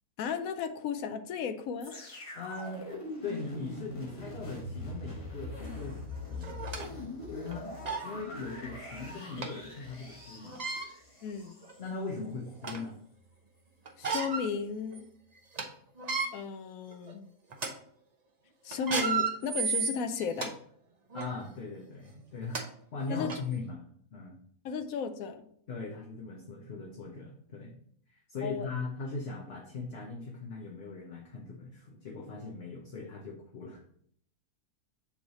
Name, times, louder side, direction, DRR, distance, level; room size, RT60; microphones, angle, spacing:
voice 1, 0.2-2.2 11.2-11.5 14.0-15.0 16.3-17.3 18.6-20.5 23.1-23.3 24.6-25.5 28.4-28.7, left 6 dB, 75° left, 9 dB, 1.0 m, -34 dB
sound 1, 1.8-11.9 12.5-12.6, left 2 dB, 25° left, 1.2 m, -42 dB
voice 2, 2.3-2.8 3.2-6.0 6.3-6.7 7.3-7.7 8.0-10.6 11.8-13.0 21.1-23.8 24.1-24.4 25.7-27.8 28.1-33.8, left 3 dB, 50° left, -1 dB, 1.0 m, -40 dB
sound 2, 5.7-5.8 6.4-6.9 7.5-7.6 7.8-8.1 9.4-9.5 10.4-10.9 11.6-11.7 12.2-12.9 13.9-14.5 14.9-15.0 15.4-15.6 16.0-16.3 16.9-17.1 17.5-17.7 18.7-20.5 21.1-21.3 22.2-22.3 22.5-22.6 23.3-23.4, right 5 dB, 40° right, 0.7 m, -32 dB
7.1 x 3.3 x 4.1 m, 0.63 s
omnidirectional pair, 1.5 m